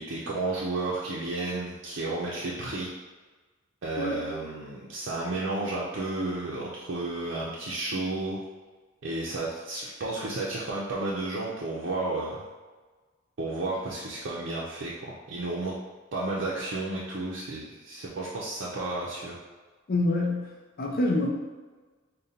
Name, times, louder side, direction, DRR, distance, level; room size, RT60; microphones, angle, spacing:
voice 1, 0.0-2.9 3.8-8.4 9.0-12.4 13.4-14.9 15.3-15.7 16.1-19.3, right 2 dB, 65° right, -6 dB, 0.5 m, -32 dB
voice 2, 19.9-20.5 20.8-21.3, left 2 dB, 50° left, 0 dB, 0.5 m, -26 dB
5.1 x 2.2 x 2.8 m, 1.3 s
head